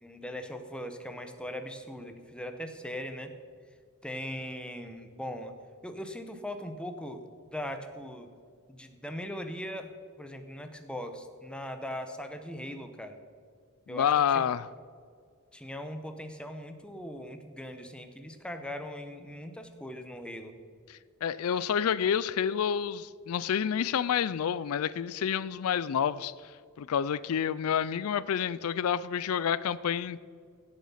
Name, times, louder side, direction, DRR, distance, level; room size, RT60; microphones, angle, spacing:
voice 1, 0.0-3.3 4.0-5.5 5.8-8.3 8.7-13.2 13.9-14.4 15.5-20.5, equal, 5° left, 7 dB, 1.0 m, -40 dB
voice 2, 13.9-14.7 20.9-26.3 26.8-30.2, left 8 dB, 75° left, 17 dB, 0.4 m, -29 dB
16.5 x 7.3 x 5.6 m, 2.1 s
head